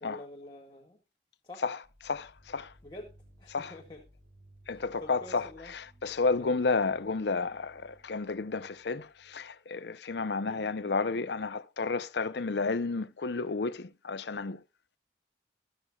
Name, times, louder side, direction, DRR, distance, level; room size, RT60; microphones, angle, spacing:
voice 1, 0.0-1.0 1.4-1.6 2.8-4.0 4.7-5.7 6.4-6.6 10.4-10.7, left 1 dB, 25° left, 1.7 m, -47 dB
sound 1, 1.8-9.6, right 1 dB, 25° right, 6.6 m, -60 dB
voice 2, 2.0-2.7 3.5-3.7 4.7-14.6, left 4 dB, 75° left, 0.6 m, -31 dB
14.5 x 12.5 x 2.3 m
head